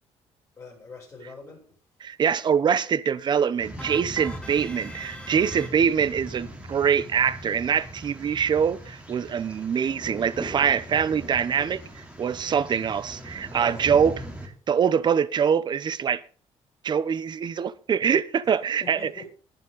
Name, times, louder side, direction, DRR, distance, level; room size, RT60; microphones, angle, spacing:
voice 1, 0.6-1.6 13.5-13.9 18.8-19.3, left 3 dB, 30° left, 7.4 m, -42 dB
voice 2, 2.0-14.1 14.7-16.2 16.8-19.0, right 7 dB, 40° right, 0.9 m, -24 dB
sound 1, 3.6-14.5, equal, 10° right, 3.3 m, -40 dB
sound 2, 3.8-6.2, left 1 dB, 10° left, 1.4 m, -43 dB
20.0 x 7.2 x 4.0 m
cardioid pair, 120°, 11 cm